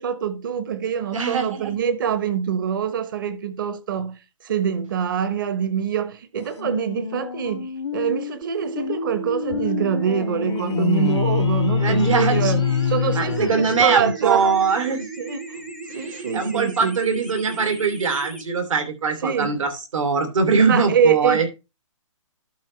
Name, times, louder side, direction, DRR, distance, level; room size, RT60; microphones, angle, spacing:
voice 1, 0.0-14.8 15.2-15.6 15.9-17.0 19.2-19.5 20.6-21.5, right 8 dB, 35° right, 1.1 m, -25 dB
voice 2, 1.1-1.7 11.8-12.5 13.1-15.1 15.9-21.5, right 5 dB, 65° right, 3.1 m, -22 dB
sound 1, 6.6-14.1, left 8 dB, 55° left, 0.5 m, -25 dB
sound 2, 8.4-18.4, right 5 dB, 5° right, 0.6 m, -35 dB
12.0 x 6.3 x 3.2 m
hypercardioid pair, 170°, 17 cm